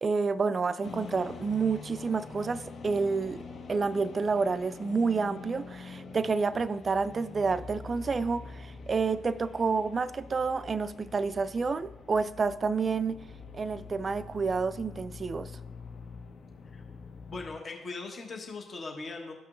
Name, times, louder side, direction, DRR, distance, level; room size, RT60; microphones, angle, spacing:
voice 1, 0.0-3.4 3.7-13.2 13.5-15.5, right 4 dB, 40° right, 0.4 m, -29 dB
sound 1, 0.8-17.6, left 4 dB, 60° left, 1.1 m, -45 dB
voice 2, 17.3-19.3, left 3 dB, 45° left, 1.3 m, -39 dB
14.0 x 5.7 x 2.5 m
hypercardioid pair, 50°, 0 cm